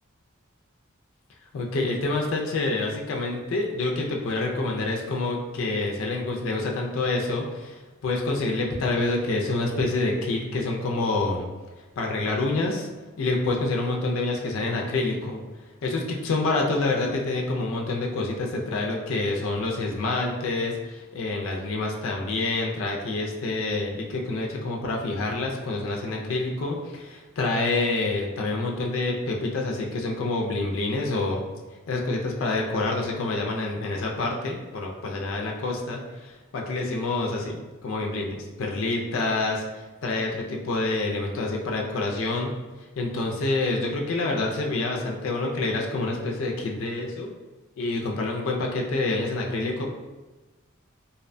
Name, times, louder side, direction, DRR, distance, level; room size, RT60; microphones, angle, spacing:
voice 1, 1.5-11.5 12.0-12.9 13.2-15.4 15.8-31.4 31.9-42.5 43.0-47.3 47.8-49.9, left 2 dB, 70° left, 0 dB, 0.3 m, -27 dB
2.6 x 2.1 x 2.5 m, 1.2 s
head